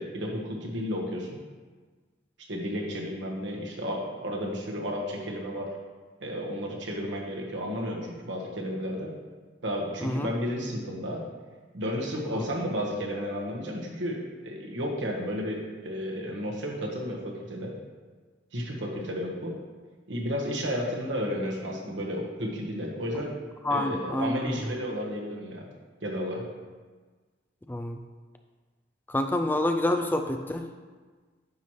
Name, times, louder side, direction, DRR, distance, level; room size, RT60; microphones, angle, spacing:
voice 1, 0.0-1.4 2.5-5.7 6.2-9.1 9.6-11.2 11.7-14.2 14.4-17.7 18.5-19.5 20.1-23.3 23.7-25.6 26.0-26.4, equal, 80° right, -1 dB, 1.4 m, -32 dB
voice 2, 23.6-24.5 27.7-28.0 29.1-30.7, left 1 dB, 10° left, 5 dB, 0.3 m, -27 dB
9.3 x 3.2 x 5.7 m, 1.4 s
head